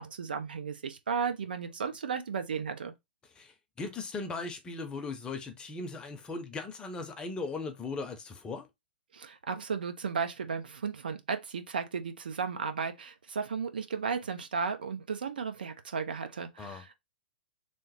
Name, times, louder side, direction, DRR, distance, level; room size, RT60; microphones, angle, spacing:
voice 1, 0.0-2.9 9.1-16.9, right 6 dB, 70° right, 0.6 m, -34 dB
voice 2, 3.4-8.7 16.6-16.8, left 3 dB, 15° left, 0.7 m, -38 dB
3.2 x 2.0 x 4.1 m
figure-of-eight pair, 105°, 5 cm